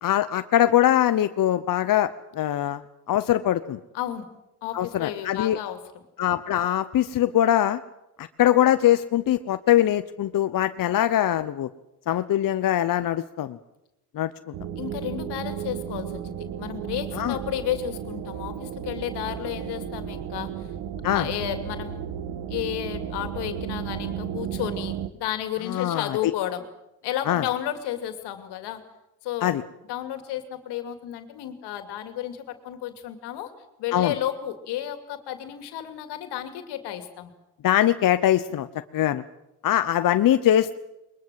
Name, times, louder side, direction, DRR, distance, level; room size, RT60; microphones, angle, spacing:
voice 1, 0.0-2.8 3.1-3.8 4.7-5.6 6.2-7.8 8.2-11.7 12.1-13.6 14.1-14.3 17.1-17.4 21.0-21.3 25.7-26.3 27.3-27.4 29.4-29.6 33.9-34.1 37.6-38.7 38.9-39.2 39.6-40.8, left 12 dB, 55° left, 11 dB, 0.9 m, -22 dB
voice 2, 3.9-4.3 4.6-5.8 14.8-20.7 21.1-22.0 22.5-26.6 27.0-28.8 29.2-29.5 29.9-33.5 33.8-37.3, left 11 dB, 80° left, 8 dB, 2.7 m, -32 dB
sound 1, 14.5-25.1, right 9 dB, 70° right, 1.6 m, -34 dB
22.0 x 21.0 x 7.6 m, 0.91 s
supercardioid pair, 80°, 40 cm